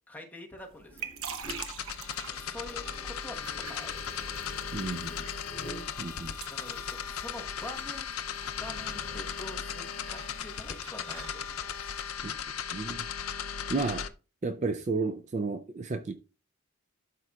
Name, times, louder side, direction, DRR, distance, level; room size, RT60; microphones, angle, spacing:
voice 1, 0.1-1.1 2.3-4.4 4.9-5.4 6.5-8.1 8.5-11.9, left 1 dB, 5° left, 1.2 m, -46 dB
sound 1, 0.6-12.2, right 7 dB, 70° right, 1.0 m, -47 dB
sound 2, 0.7-9.2, right 1 dB, 10° right, 3.0 m, -50 dB
sound 3, 1.4-14.1, left 8 dB, 75° left, 0.6 m, -37 dB
voice 2, 4.7-5.1 6.0-6.3 12.7-13.0 13.7-14.1 14.4-16.1, right 3 dB, 30° right, 0.4 m, -32 dB
12.0 x 5.0 x 2.3 m
head